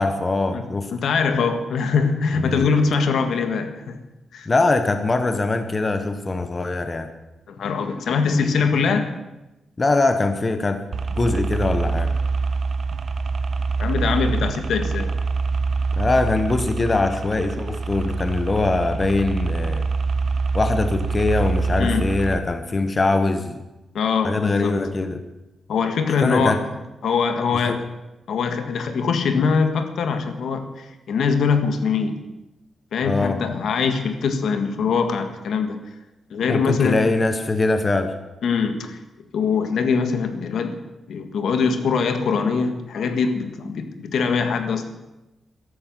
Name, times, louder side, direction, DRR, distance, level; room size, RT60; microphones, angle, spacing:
voice 1, 0.0-0.9 2.3-2.7 4.5-7.1 9.8-10.8 11.1-12.1 16.0-19.9 20.5-23.6 24.2-25.2 26.2-26.6 27.5-27.8 33.0-33.4 36.4-38.1, left 3 dB, 20° left, 8 dB, 1.0 m, -22 dB
voice 2, 0.9-4.0 4.3-4.5 7.5-9.1 13.8-15.1 21.8-22.1 23.9-24.8 25.7-26.6 27.0-27.8 28.3-32.2 32.9-35.8 36.3-37.0 38.4-39.0 39.3-40.8 41.1-44.9, left 5 dB, 70° left, 8 dB, 1.7 m, -22 dB
sound 1, 10.9-22.4, right 4 dB, 45° right, 0.8 m, -25 dB
14.0 x 13.0 x 7.6 m, 0.98 s
wide cardioid pair, 175°, 0 cm